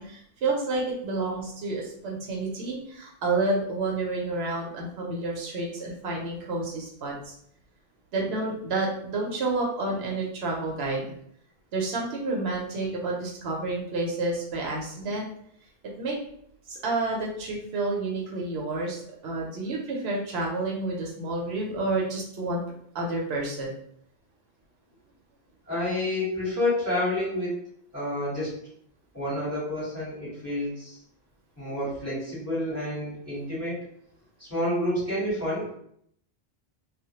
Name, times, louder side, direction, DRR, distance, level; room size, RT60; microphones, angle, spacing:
voice 1, 0.0-7.3 8.1-11.1 11.7-15.3 16.0-16.2 16.7-22.6 22.9-23.7, right 2 dB, 90° right, -1 dB, 0.9 m, -29 dB
voice 2, 25.7-27.6 27.9-28.5 29.1-31.0 31.6-33.8 34.4-35.7, left 1 dB, 15° left, -8 dB, 1.0 m, -29 dB
2.2 x 2.0 x 2.8 m, 0.68 s
omnidirectional pair, 1.0 m